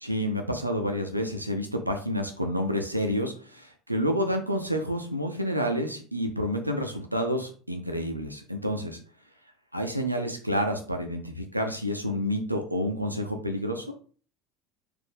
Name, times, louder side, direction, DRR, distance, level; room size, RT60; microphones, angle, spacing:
voice 1, 0.0-9.0 9.7-13.9, equal, 90° right, 4 dB, 0.4 m, -29 dB
4.2 x 2.5 x 3.3 m, 0.42 s
figure-of-eight pair, 70°, 0 cm